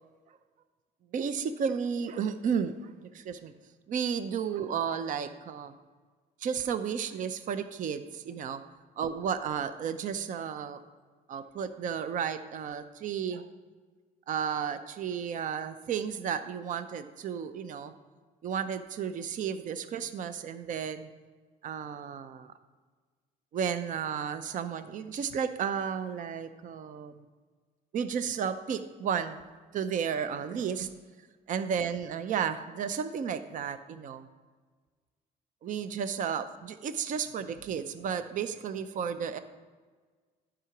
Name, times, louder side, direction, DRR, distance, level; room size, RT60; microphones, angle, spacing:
voice 1, 1.1-3.5 3.9-5.7 6.4-8.6 9.0-10.8 11.3-13.5 14.3-17.9 18.4-21.1 21.6-22.5 23.5-27.2 27.9-29.4 29.7-30.9 31.5-34.3 35.6-39.4, right 7 dB, 50° right, 11 dB, 0.6 m, -33 dB
11.0 x 5.0 x 5.9 m, 1.5 s
cardioid pair, 110°, 17 cm